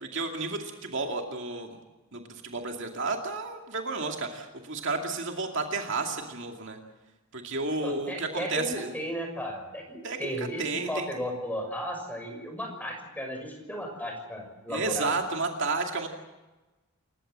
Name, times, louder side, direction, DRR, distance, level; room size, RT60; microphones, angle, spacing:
voice 1, 0.0-1.8 2.1-6.8 7.3-8.9 10.0-11.1 14.7-16.1, right 3 dB, 55° right, 3 dB, 2.4 m, -32 dB
voice 2, 7.8-15.1, equal, 5° left, 3 dB, 6.1 m, -35 dB
28.0 x 15.5 x 7.7 m, 1.1 s
head